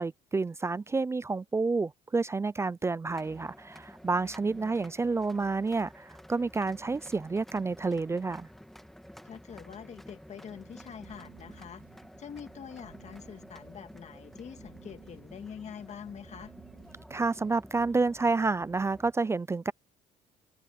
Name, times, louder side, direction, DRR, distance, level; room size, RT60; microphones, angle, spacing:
voice 1, 0.0-8.5 17.1-19.7, right 3 dB, 15° right, 0.3 m, -29 dB
sound 1, 3.1-19.1, equal, ahead, 2.0 m, -51 dB
voice 2, 4.4-4.8 9.2-11.8 12.2-16.5, left 7 dB, 40° left, 2.0 m, -45 dB
sound 2, 10.5-17.6, right 10 dB, 60° right, 3.0 m, -56 dB
cardioid pair, 110°, 17 cm